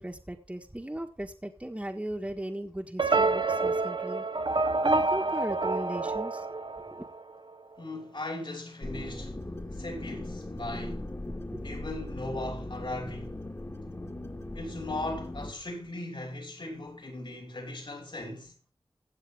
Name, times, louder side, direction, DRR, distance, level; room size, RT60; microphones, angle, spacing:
voice 1, 0.0-4.2 4.8-6.5 6.8-7.1 11.5-11.8, right 1 dB, 15° right, 1.6 m, -37 dB
sound 1, 3.0-7.3, right 3 dB, 55° right, 1.0 m, -27 dB
voice 2, 7.8-9.5 9.7-11.1 11.6-13.4 14.5-18.5, left 2 dB, 60° left, 5.4 m, -38 dB
sound 2, 8.8-15.5, left 1 dB, 30° left, 2.2 m, -39 dB
16.0 x 7.6 x 3.7 m
wide cardioid pair, 65°, 10 cm